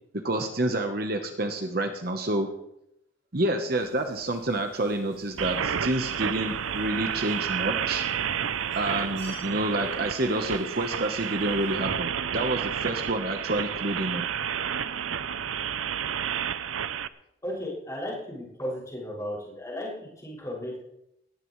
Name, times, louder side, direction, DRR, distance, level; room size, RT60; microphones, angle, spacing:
voice 1, 0.1-2.5 3.3-8.1 8.7-14.3, right 1 dB, 50° right, 5 dB, 1.1 m, -28 dB
sound 1, 3.7-11.9, right 2 dB, 75° right, 5.6 m, -50 dB
sound 2, 5.4-17.1, right 8 dB, 90° right, 0.6 m, -30 dB
voice 2, 17.4-20.9, equal, 15° left, -5 dB, 6.5 m, -35 dB
19.5 x 15.5 x 3.2 m, 0.80 s
head